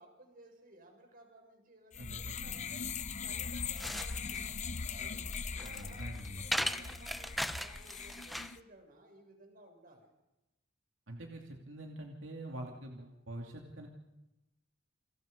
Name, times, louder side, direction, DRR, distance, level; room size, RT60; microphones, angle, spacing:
voice 1, 0.0-2.8 3.2-4.5 4.9-5.2 5.5-10.1, right 1 dB, 45° right, 3 dB, 6.7 m, -58 dB
sound 1, 1.9-8.6, left 5 dB, 40° left, 0.8 m, -40 dB
voice 2, 2.0-2.8 5.6-6.7 11.1-13.9, right 1 dB, 80° right, 1 dB, 2.7 m, -46 dB
sound 2, 3.4-8.6, equal, ahead, 0.9 m, -39 dB
30.0 x 26.5 x 5.3 m, 0.96 s
head